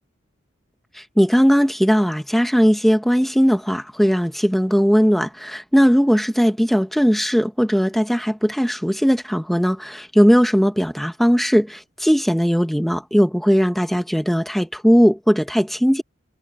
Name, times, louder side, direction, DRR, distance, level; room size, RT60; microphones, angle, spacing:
voice 1, 1.2-16.0, equal, ahead, 1.5 m, -18 dB
head